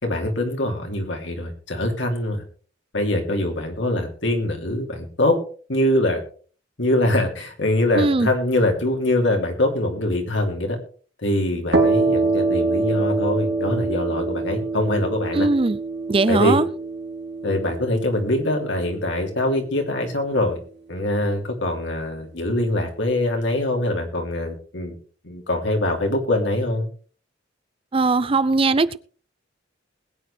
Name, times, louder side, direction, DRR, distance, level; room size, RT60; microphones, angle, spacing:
voice 1, 0.0-2.4 2.9-5.3 5.7-6.2 6.8-10.8 11.2-15.5 16.3-16.6 17.4-20.6 20.9-25.0 25.2-26.9, left 1 dB, 70° left, 3.1 m, -23 dB
voice 2, 7.9-8.3 15.3-15.8 16.1-16.7 27.9-29.0, right 3 dB, 30° right, 0.5 m, -19 dB
sound 1, 11.7-19.2, right 3 dB, 60° right, 3.1 m, -25 dB
21.0 x 9.5 x 3.4 m
head